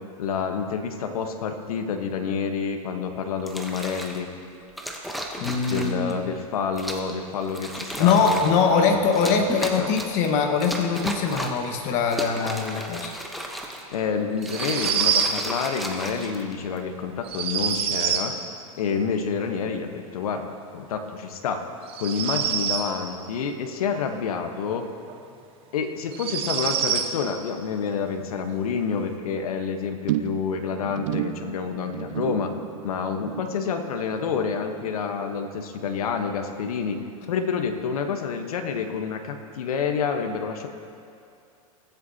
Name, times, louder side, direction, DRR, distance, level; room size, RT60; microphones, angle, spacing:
voice 1, 0.2-4.3 5.7-9.3 9.6-9.9 13.9-18.3 18.8-20.4 20.7-21.6 22.0-24.8 25.7-32.5 32.8-37.0 37.3-40.7, left 6 dB, 80° left, 6 dB, 1.1 m, -28 dB
sound 1, 3.4-4.2 4.8-6.1 6.8-7.1 7.5-8.6 9.1-10.3 10.6-11.7 12.0-14.0 14.4-16.8 17.5-17.9, right 1 dB, ahead, 0.9 m, -34 dB
voice 2, 5.4-6.2 8.0-13.1, left 5 dB, 45° left, 3 dB, 1.4 m, -22 dB
sound 2, 14.4-15.4 17.2-18.3 21.9-22.9 25.1-25.2 26.1-27.1, right 8 dB, 30° right, 1.0 m, -25 dB
sound 3, 30.1-36.7 36.9-37.4 37.7-37.8, right 14 dB, 60° right, 0.5 m, -34 dB
20.5 x 8.1 x 2.8 m, 2.6 s
supercardioid pair, 135°, 18 cm